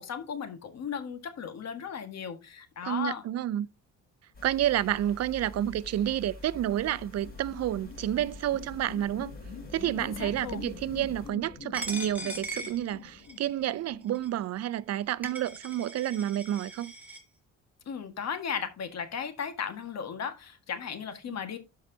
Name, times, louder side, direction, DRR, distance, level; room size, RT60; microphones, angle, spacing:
voice 1, 0.0-3.2 10.0-10.7 17.8-21.6, left 7 dB, 60° left, 1.6 m, -36 dB
voice 2, 2.8-3.7 4.4-9.3 9.7-16.9 21.3-21.4, right 12 dB, 60° right, 0.5 m, -30 dB
sound 1, 4.3-11.3, left 2 dB, 30° left, 3.8 m, -47 dB
sound 2, 5.5-15.2, left 5 dB, 85° left, 2.4 m, -47 dB
Coin (dropping), 11.7-13.5 14.2-14.3 14.9-15.0 15.2-17.2, right 1 dB, 5° right, 2.1 m, -40 dB
12.5 x 4.7 x 2.7 m
cardioid pair, 90°, 30 cm